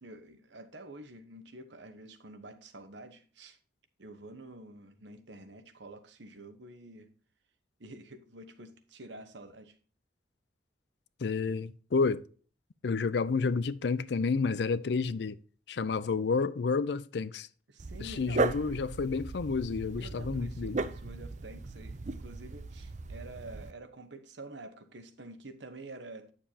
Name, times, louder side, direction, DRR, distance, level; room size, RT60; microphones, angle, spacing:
voice 1, 0.0-3.6 4.0-7.1 7.8-9.7 17.7-18.6 20.0-26.3, right 2 dB, 75° right, 1.1 m, -48 dB
voice 2, 11.2-12.2 12.8-15.4 15.7-17.5 18.0-20.8, left 4 dB, 65° left, 0.4 m, -30 dB
Dog, 17.8-23.7, right 3 dB, 40° right, 0.5 m, -36 dB
8.8 x 7.2 x 2.8 m
head